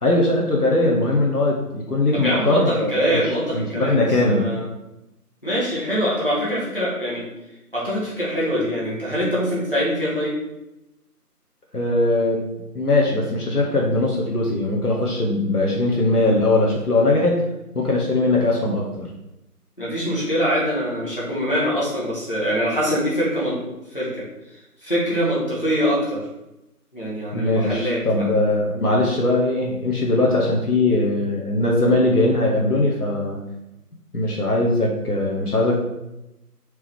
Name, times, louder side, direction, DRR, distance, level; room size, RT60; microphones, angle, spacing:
voice 1, 0.0-3.0 3.2-4.5 11.7-12.4 12.7-17.4 17.7-19.1 27.3-33.4 34.1-35.8, left 2 dB, 70° left, -2 dB, 1.0 m, -20 dB
voice 2, 2.1-4.6 5.4-7.2 7.7-10.3 19.8-23.6 23.9-24.2 24.8-26.2 26.9-28.4, equal, 35° left, -8 dB, 1.3 m, -24 dB
4.6 x 3.0 x 3.5 m, 0.92 s
figure-of-eight pair, 175°, 47 cm